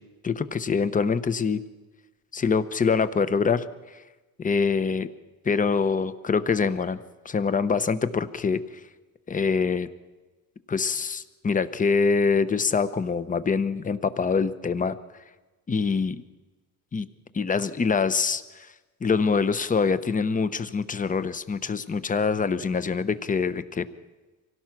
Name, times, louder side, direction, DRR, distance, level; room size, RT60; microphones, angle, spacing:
voice 1, 0.2-1.6 2.3-3.6 4.4-5.1 5.4-7.0 7.2-8.6 9.3-9.9 10.7-15.0 15.7-16.2 16.9-17.1 17.3-18.7 19.0-23.9, left 5 dB, 20° left, 13 dB, 0.9 m, -24 dB
25.5 x 17.0 x 6.0 m, 1.2 s
cardioid pair, 125°, 36 cm